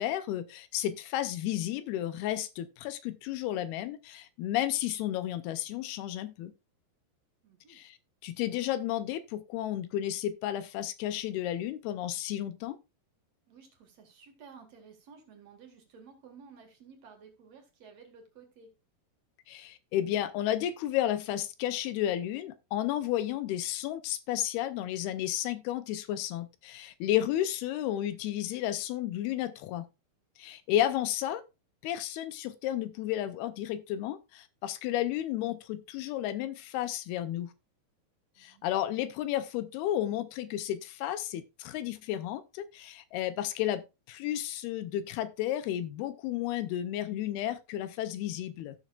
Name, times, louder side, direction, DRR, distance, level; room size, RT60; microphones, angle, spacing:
voice 1, 0.0-6.5 7.7-8.0 8.2-12.8 19.5-29.9 30.4-31.4 31.8-37.5 38.4-48.8, left 12 dB, 80° left, 2.5 m, -32 dB
voice 2, 7.4-7.8 13.5-18.7 27.0-27.3 38.4-38.8, right 5 dB, 50° right, 2.4 m, -54 dB
15.5 x 6.2 x 2.4 m
omnidirectional pair, 4.7 m